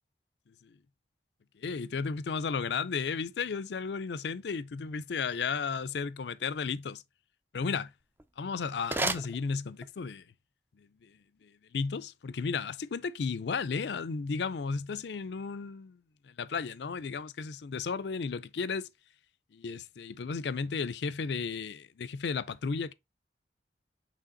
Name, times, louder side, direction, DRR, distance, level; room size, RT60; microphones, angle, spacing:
voice 1, 1.6-7.0 7.5-7.9 8.4-10.2 10.8-16.0 16.2-18.9 19.5-22.9, left 5 dB, 80° left, 0.5 m, -34 dB
sound 1, 8.0-10.1, right 2 dB, 10° right, 0.4 m, -36 dB
8.4 x 3.4 x 3.8 m
head